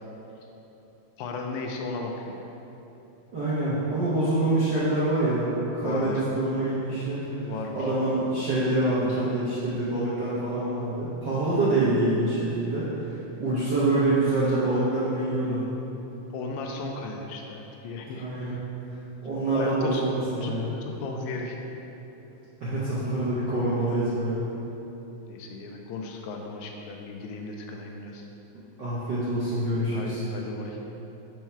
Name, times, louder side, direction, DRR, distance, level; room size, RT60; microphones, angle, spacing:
voice 1, 1.2-2.5 5.8-6.2 7.4-7.9 16.3-18.7 19.5-20.0 20.4-20.5 20.8-21.6 25.3-28.3 29.7-30.8, left 3 dB, 80° left, 1 dB, 1.8 m, -35 dB
voice 2, 3.3-15.6 18.1-18.5 19.2-20.7 22.6-24.5 28.8-30.2, right 2 dB, 65° right, -11 dB, 1.1 m, -26 dB
4.6 x 4.5 x 5.5 m, 3.0 s
omnidirectional pair, 3.4 m